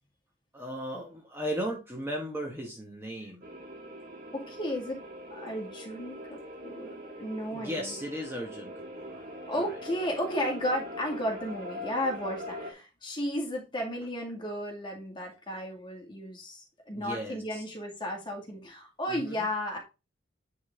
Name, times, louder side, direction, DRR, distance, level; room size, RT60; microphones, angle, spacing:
voice 1, 0.5-3.5 7.5-9.7 16.9-17.6 19.1-19.5, equal, 10° right, 0 dB, 1.1 m, -37 dB
sound 1, 3.4-12.7, left 1 dB, 45° right, 2.0 m, -42 dB
voice 2, 4.3-5.0 5.3-7.9 9.5-19.8, equal, 25° left, 0 dB, 2.0 m, -34 dB
9.5 x 3.8 x 3.6 m, 0.28 s
head